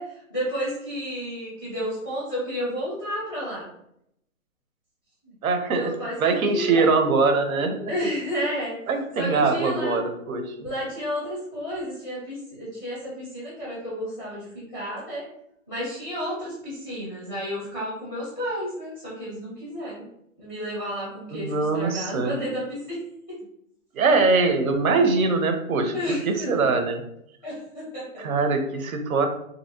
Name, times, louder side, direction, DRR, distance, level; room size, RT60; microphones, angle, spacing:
voice 1, 0.0-3.7 5.2-5.3 5.7-7.0 7.9-8.8 9.2-10.0 10.6-15.3 15.7-20.1 20.4-23.4 25.9-26.6 27.4-28.4, equal, 15° left, -8 dB, 0.5 m, -31 dB
voice 2, 5.4-5.9 6.2-7.9 8.9-10.7 21.3-22.4 23.9-26.0 26.3-27.0 28.2-29.3, right 4 dB, 80° right, 6 dB, 0.7 m, -22 dB
2.7 x 2.7 x 2.7 m, 0.76 s
hypercardioid pair, 155°, 41 cm